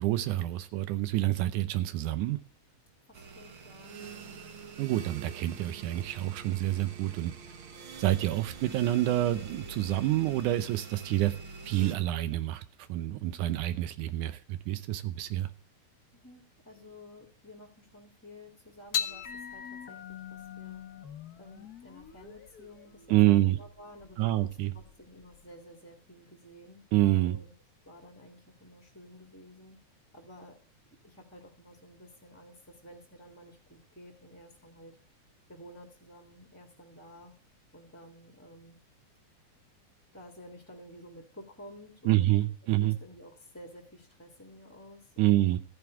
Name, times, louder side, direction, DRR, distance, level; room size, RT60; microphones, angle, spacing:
voice 1, 0.0-2.4 4.8-7.3 8.0-11.4 11.7-12.6 12.9-15.5 23.1-23.6 24.2-24.7 26.9-27.4 42.1-43.0 45.2-45.6, right 15 dB, 85° right, 12 dB, 2.3 m, -27 dB
voice 2, 3.1-4.7 16.1-20.8 21.4-26.8 27.2-27.5 27.8-29.8 30.1-30.6 31.0-35.0 35.5-37.3 37.7-38.8 40.1-42.3 42.8-45.4, left 1 dB, 5° left, 3 dB, 1.3 m, -52 dB
sound 1, 3.1-12.0, right 5 dB, 55° right, 1.7 m, -46 dB
sound 2, 18.9-25.5, left 8 dB, 90° left, 0.8 m, -40 dB
14.0 x 10.5 x 3.6 m, 0.41 s
omnidirectional pair, 3.5 m